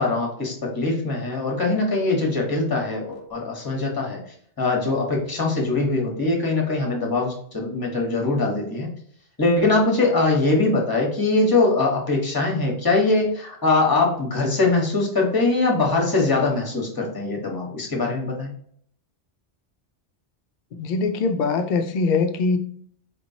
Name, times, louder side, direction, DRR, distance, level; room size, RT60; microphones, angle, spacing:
voice 1, 0.0-4.2 4.6-8.9 9.4-18.5, left 3 dB, 20° left, 0 dB, 1.0 m, -22 dB
voice 2, 20.7-22.6, left 4 dB, 60° left, 8 dB, 0.5 m, -22 dB
4.3 x 2.9 x 2.7 m, 0.62 s
omnidirectional pair, 1.2 m